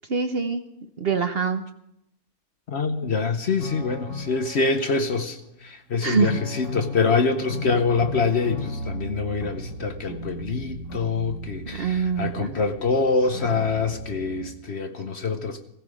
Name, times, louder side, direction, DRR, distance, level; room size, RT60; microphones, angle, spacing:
voice 1, 0.1-0.6 1.0-1.6 6.0-6.4 11.7-12.7, right 5 dB, 45° right, 7 dB, 1.0 m, -24 dB
voice 2, 2.7-15.6, left 4 dB, 50° left, 8 dB, 1.0 m, -25 dB
sound 1, 3.6-5.6 6.2-14.5, left 1 dB, 65° left, 4.1 m, -35 dB
16.5 x 16.0 x 4.9 m, 0.79 s
omnidirectional pair, 1.6 m